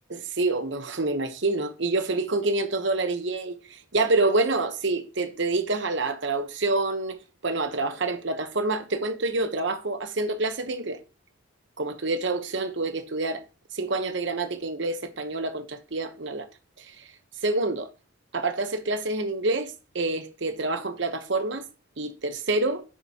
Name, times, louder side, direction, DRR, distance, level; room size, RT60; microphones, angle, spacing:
voice 1, 0.1-11.0 11.8-13.4 13.7-16.5 16.8-17.1 17.4-17.9 18.3-21.6 22.0-22.8, right 2 dB, 60° right, 1.1 m, -27 dB
10.0 x 6.9 x 3.0 m
head